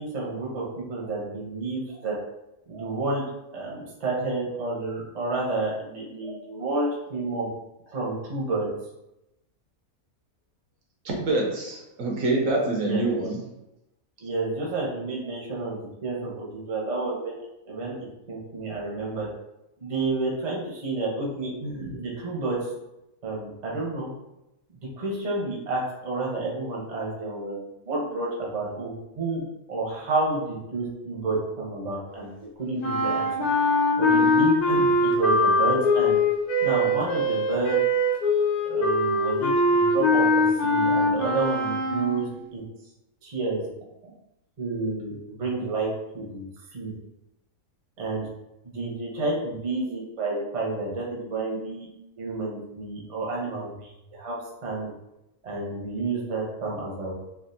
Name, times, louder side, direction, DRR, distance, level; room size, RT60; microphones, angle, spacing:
voice 1, 0.0-2.1 2.7-3.2 3.5-7.5 7.9-8.7 12.7-13.0 14.2-17.4 17.7-18.0 18.3-19.3 19.8-22.7 23.2-24.1 25.0-29.4 29.7-32.3 32.6-33.3 34.0-36.2 36.6-37.8 38.6-42.6 43.2-43.7 44.6-45.9 46.1-46.9 48.0-48.3 48.6-51.9 52.2-54.4 54.6-54.9 55.4-57.1, right 3 dB, 35° right, -3 dB, 0.7 m, -30 dB
voice 2, 11.0-13.4, right 2 dB, 70° right, -1 dB, 1.0 m, -25 dB
sound 1, 32.8-42.3, left 1 dB, 90° left, 1.3 m, -22 dB
3.3 x 2.4 x 2.6 m, 0.90 s
omnidirectional pair, 1.5 m